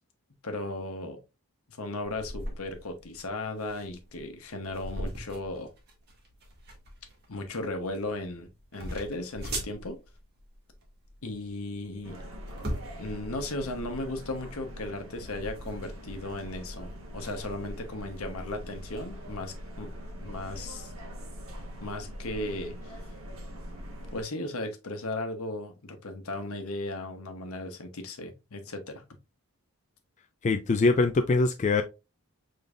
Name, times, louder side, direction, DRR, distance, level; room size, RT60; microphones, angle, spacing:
voice 1, 0.4-1.2 1.8-5.7 7.3-10.0 11.2-12.2 13.0-19.9 20.2-20.9 21.8-22.9 24.1-29.0, left 2 dB, 75° left, 1.0 m, -36 dB
sound 1, 2.0-17.8, right 1 dB, 45° right, 1.7 m, -42 dB
sound 2, 12.0-24.2, equal, 70° right, 1.3 m, -42 dB
voice 2, 30.4-31.8, left 3 dB, 30° left, 0.3 m, -23 dB
5.2 x 3.8 x 2.5 m
head